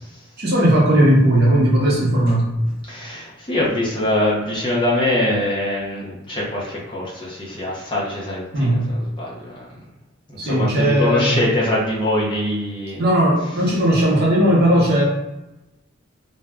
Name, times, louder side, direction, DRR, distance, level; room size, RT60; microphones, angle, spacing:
voice 1, 0.4-2.5 8.5-8.9 10.4-11.4 13.0-15.0, right 1 dB, 50° right, -3 dB, 0.8 m, -17 dB
voice 2, 2.9-9.7 10.4-13.0, left 1 dB, 25° left, -6 dB, 0.8 m, -23 dB
2.6 x 2.2 x 3.4 m, 0.96 s
head